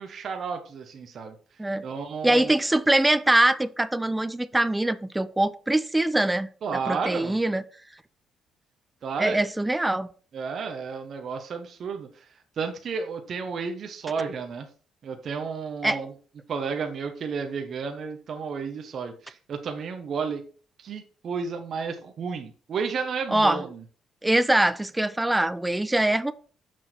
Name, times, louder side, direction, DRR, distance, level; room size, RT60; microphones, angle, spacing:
voice 1, 0.0-1.3 1.8-2.6 6.6-7.4 9.0-9.4 10.3-12.2 12.6-14.7 15.0-16.1 16.5-20.4 20.8-23.8, right 5 dB, 60° right, 5 dB, 1.1 m, -32 dB
voice 2, 2.2-6.5 6.9-7.6 9.2-10.1 15.8-16.0 23.3-23.6 24.2-26.3, right 1 dB, 10° right, 14 dB, 0.6 m, -23 dB
6.4 x 6.2 x 4.5 m, 0.41 s
cardioid pair, 90°, 0 cm